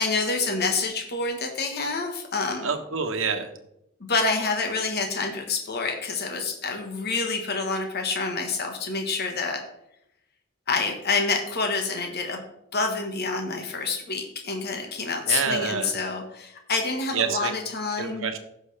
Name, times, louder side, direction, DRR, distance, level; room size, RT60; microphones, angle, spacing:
voice 1, 0.0-2.7 4.0-9.6 10.7-12.4 12.7-18.3, left 4 dB, 50° left, 3 dB, 1.3 m, -27 dB
voice 2, 2.6-3.5 15.3-15.9 17.1-17.5 18.0-18.4, right 5 dB, 70° right, 5 dB, 1.3 m, -27 dB
15.5 x 6.4 x 3.3 m, 0.79 s
head